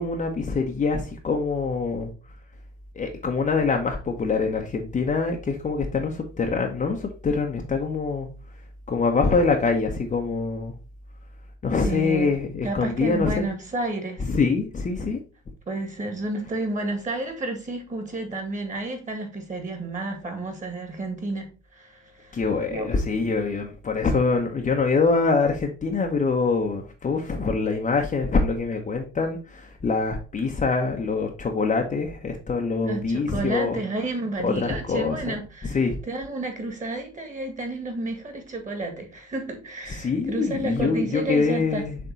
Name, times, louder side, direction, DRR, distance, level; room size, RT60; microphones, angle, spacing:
voice 1, 0.0-2.1 3.0-8.3 8.9-10.7 11.6-13.5 14.2-15.2 22.3-33.8 34.4-35.3 35.7-36.0 39.9-42.0, left 4 dB, 20° left, 0.9 m, -24 dB
voice 2, 11.9-12.3 12.6-14.2 15.7-22.4 22.7-23.2 32.8-41.9, right 2 dB, 20° right, 1.9 m, -31 dB
6.8 x 3.6 x 4.0 m
figure-of-eight pair, 65°, 33 cm